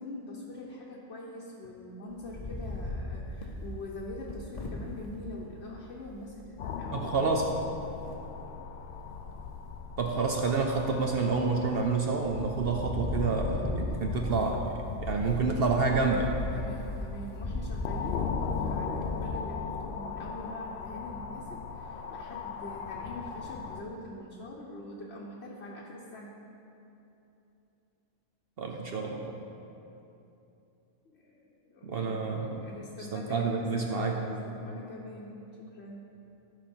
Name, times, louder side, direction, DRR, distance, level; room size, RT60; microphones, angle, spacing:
voice 1, 0.0-7.6 16.5-26.4 31.0-32.3 32.5-36.1, left 1 dB, 55° left, -4 dB, 1.1 m, -44 dB
Wind, 2.1-5.2 5.8-5.9 6.0-6.4 7.9-8.5 9.0-9.5 9.8-11.0 11.4-11.9 12.2-20.4, left 2 dB, 35° left, 0.7 m, -37 dB
sound 1, 6.6-23.8, left 6 dB, 80° left, 0.5 m, -39 dB
voice 2, 6.9-7.6 10.0-14.7 15.0-16.3 28.6-29.4 31.8-32.7 33.1-34.4, right 4 dB, 60° right, 1 dB, 0.7 m, -28 dB
13.5 x 5.4 x 4.4 m, 2.9 s
omnidirectional pair, 1.5 m